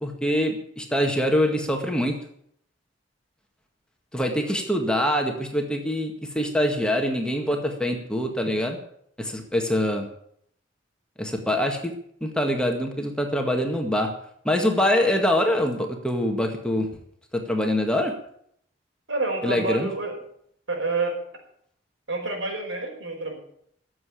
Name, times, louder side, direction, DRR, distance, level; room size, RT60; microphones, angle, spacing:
voice 1, 0.0-2.2 4.1-8.8 9.2-10.1 11.2-11.9 12.2-14.1 14.5-16.9 17.3-18.1 19.4-19.9, left 1 dB, 5° left, 2 dB, 1.8 m, -24 dB
voice 2, 19.1-20.1 20.7-21.2 22.1-23.4, right 3 dB, 80° right, 1 dB, 5.5 m, -28 dB
15.5 x 7.9 x 8.5 m, 0.67 s
head